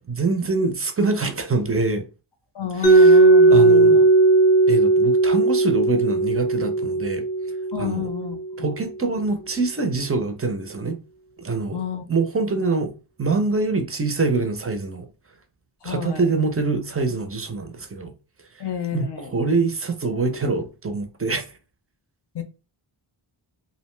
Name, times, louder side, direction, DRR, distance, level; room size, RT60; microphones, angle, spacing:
voice 1, 0.1-2.0 2.8-3.2 3.5-4.0 4.7-7.3 7.8-8.1 8.6-11.0 11.4-11.8 12.1-12.9 13.2-15.1 15.8-18.1 18.9-21.5, right 3 dB, 30° right, 0.5 m, -24 dB
voice 2, 2.5-4.1 7.7-8.8 11.7-12.1 12.5-12.6 15.8-16.3 18.6-19.3 22.3-22.4, left 8 dB, 55° left, 0.6 m, -31 dB
Mallet percussion, 2.8-8.7, right 3 dB, 15° left, 0.7 m, -16 dB
2.5 x 2.1 x 3.1 m
wide cardioid pair, 80°, 50 cm